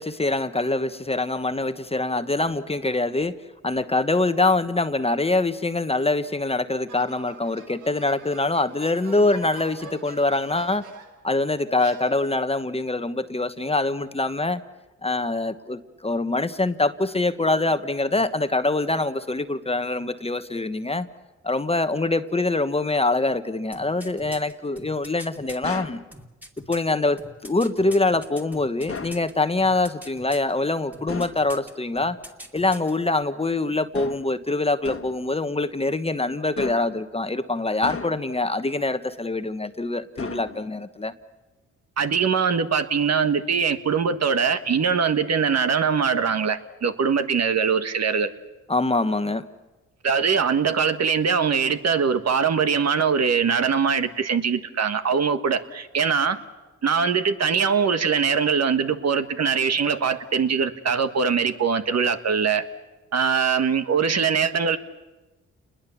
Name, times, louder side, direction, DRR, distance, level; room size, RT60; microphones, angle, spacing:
voice 1, 0.0-3.3 3.6-10.8 11.2-14.6 15.0-21.1 21.4-26.0 26.7-32.2 32.5-41.1 48.7-49.4, left 2 dB, 20° left, 10 dB, 1.2 m, -24 dB
sound 1, 6.9-11.3 11.8-12.6, right 6 dB, 90° right, 2.1 m, -46 dB
sound 2, 23.7-25.6 26.1-29.3 29.6-30.5 30.9-31.7 32.0-32.9 33.2-33.3, equal, 5° right, 2.6 m, -42 dB
sound 3, 25.6-26.1 28.9-29.3 31.1-31.5 33.9-34.4 34.8-35.2 36.6-37.0 37.8-38.4 40.2-40.8, left 5 dB, 50° left, 1.6 m, -35 dB
voice 2, 42.0-48.3 50.0-56.4 56.8-62.6 63.1-64.8, right 6 dB, 60° right, 9 dB, 1.5 m, -22 dB
29.0 x 21.0 x 7.1 m, 1.1 s
cardioid pair, 70°, 30 cm